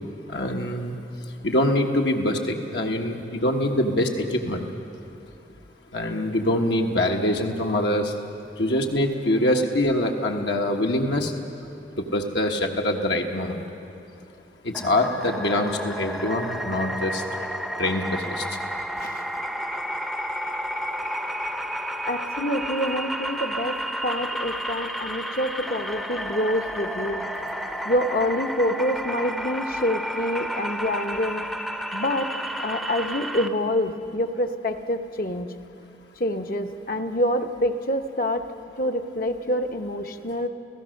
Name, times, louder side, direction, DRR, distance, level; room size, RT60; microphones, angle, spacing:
voice 1, 0.3-0.9 1.4-4.7 5.9-8.1 8.6-11.3 12.0-13.6 14.6-17.2 17.8-18.4, left 1 dB, 70° left, 1 dB, 1.4 m, -24 dB
sound 1, 14.7-33.5, equal, ahead, 0.7 m, -31 dB
voice 2, 19.0-19.4 22.1-27.3 27.8-31.5 31.9-32.3 32.6-35.5 36.2-38.4 38.8-40.5, left 1 dB, 50° left, 4 dB, 1.0 m, -26 dB
30.0 x 16.0 x 6.5 m, 2.7 s
head